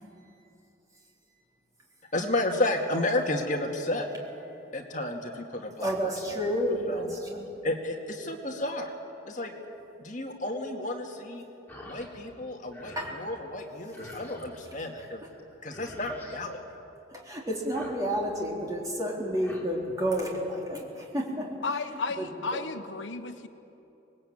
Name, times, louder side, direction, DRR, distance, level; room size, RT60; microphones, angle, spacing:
voice 1, 2.1-4.1 4.7-6.1 6.9-7.1 7.6-8.9 9.3-9.5 10.0-11.4 11.9-15.2 15.6-16.6, left 2 dB, 40° left, 2 dB, 2.1 m, -32 dB
voice 2, 5.8-7.6 13.0-13.1 17.1-21.5 22.2-22.7, equal, 20° right, -2 dB, 3.8 m, -31 dB
sound 1, 11.7-12.1 12.4-13.2 13.9-14.6 15.4-15.5 15.7-16.4 17.5-18.4 19.1-19.6, left 1 dB, 10° left, 3.3 m, -47 dB
voice 3, 21.6-23.5, left 4 dB, 75° left, 8 dB, 1.0 m, -33 dB
26.0 x 20.5 x 8.9 m, 2.9 s
head